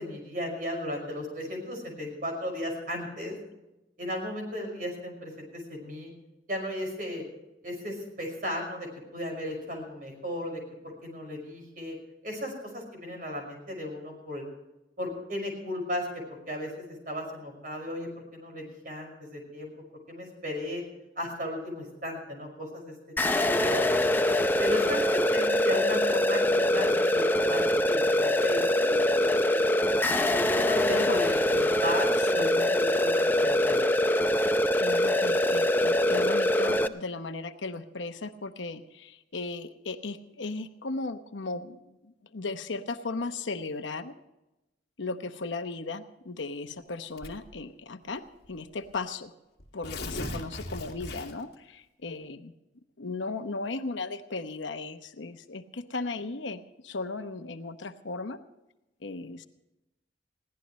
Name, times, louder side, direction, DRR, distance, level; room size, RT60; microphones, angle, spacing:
voice 1, 0.0-3.4 4.0-6.1 6.5-7.2 7.6-12.0 12.2-14.5 15.0-16.1 16.5-19.7 20.1-20.8 21.2-22.9 23.6-23.8 24.6-30.0 30.5-33.9, left 1 dB, 45° right, 2 dB, 5.8 m, -35 dB
sound 1, 23.2-36.9, left 1 dB, 10° left, 0.5 m, -24 dB
voice 2, 30.9-31.2 32.2-32.8 34.8-44.1 45.0-48.2 48.5-49.3 49.7-52.5 53.0-58.4 59.0-59.5, left 3 dB, 85° left, 8 dB, 0.9 m, -36 dB
Tearing, 47.2-47.6 48.4-48.5 48.8-48.9 49.6-51.5, left 1 dB, 55° left, 2.3 m, -38 dB
22.0 x 16.0 x 3.1 m, 0.96 s
head